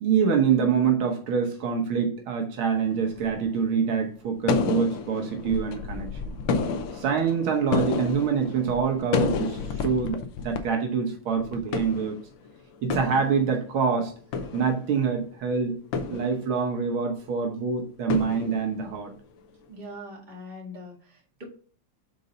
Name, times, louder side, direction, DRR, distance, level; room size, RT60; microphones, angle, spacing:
voice 1, 0.0-6.4 6.9-12.2 12.8-14.1 14.5-15.8 16.1-19.1, right 6 dB, 75° right, 1.8 m, -25 dB
sound 1, 2.7-3.5 4.5-10.6 10.8-10.9 11.4-12.5 12.7-13.8 14.2-15.2 15.9-16.8 18.1-19.1, left 5 dB, 70° left, 1.4 m, -30 dB
voice 2, 19.7-21.4, left 1 dB, 25° right, 1.8 m, -42 dB
5.3 x 3.9 x 5.4 m
omnidirectional pair, 2.3 m